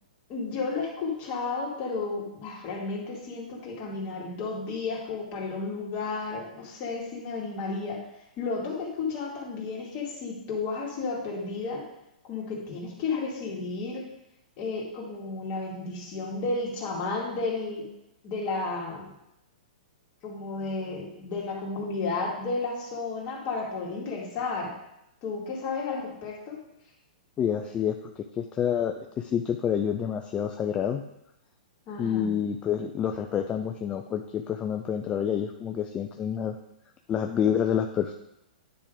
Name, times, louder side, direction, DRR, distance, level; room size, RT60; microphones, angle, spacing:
voice 1, 0.3-8.0 8.4-11.8 12.2-14.1 14.6-17.9 18.2-19.1 20.2-24.7 25.2-26.6 31.9-32.3, left 3 dB, 35° left, -2 dB, 2.3 m, -32 dB
voice 2, 27.4-28.0 28.4-31.0 32.0-36.6 37.1-38.1, left 8 dB, 20° left, 5 dB, 0.4 m, -28 dB
9.8 x 3.6 x 5.0 m, 0.84 s
hypercardioid pair, 135°, 5 cm